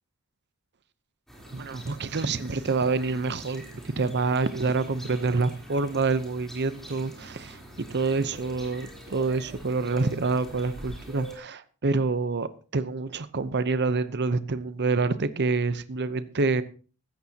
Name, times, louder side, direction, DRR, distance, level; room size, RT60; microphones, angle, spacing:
sound 1, 1.3-11.4, right 1 dB, ahead, 3.5 m, -45 dB
voice 1, 1.5-16.6, right 3 dB, 50° right, 14 dB, 0.8 m, -27 dB
15.5 x 13.0 x 2.9 m, 0.38 s
head